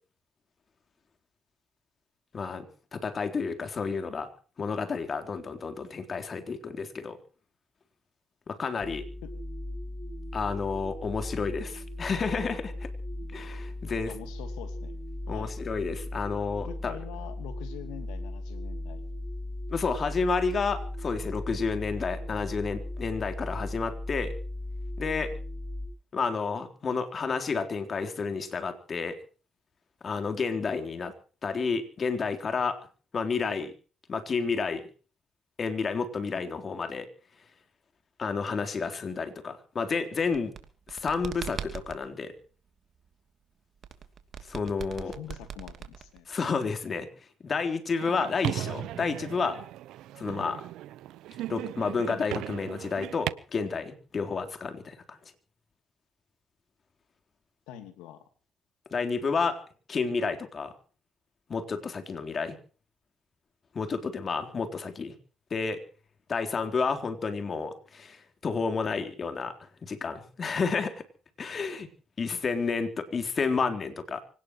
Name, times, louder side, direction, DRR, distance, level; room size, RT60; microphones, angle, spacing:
voice 1, 2.3-2.7 2.9-4.3 4.6-7.2 8.5-9.0 10.3-12.9 13.3-14.1 15.3-17.0 19.7-24.3 25.0-25.3 26.1-29.2 30.0-31.1 31.4-32.8 33.1-33.7 34.1-34.9 35.6-37.1 38.2-40.5 40.9-42.3 44.5-45.2 46.3-47.1 47.4-49.6 50.2-50.6 51.5-55.2 58.9-59.6 59.9-60.7 61.5-62.6 63.7-65.1 65.5-65.8 66.3-69.6 69.8-71.0 71.4-71.9 72.2-74.2, left 5 dB, 50° left, 7 dB, 3.9 m, -30 dB
sound 1, 8.8-25.9, left 1 dB, 20° right, 7.6 m, -37 dB
voice 2, 14.1-15.0 15.3-15.5 16.6-19.0 45.1-46.3 57.7-58.2, left 11 dB, 90° left, 10 dB, 2.8 m, -44 dB
sound 2, 40.2-42.0 43.8-46.4, right 7 dB, 60° right, 2.7 m, -40 dB
sound 3, 48.0-53.3, right 14 dB, 80° right, 0.8 m, -37 dB
25.0 x 18.5 x 3.1 m, 0.39 s
supercardioid pair, 60°, 0 cm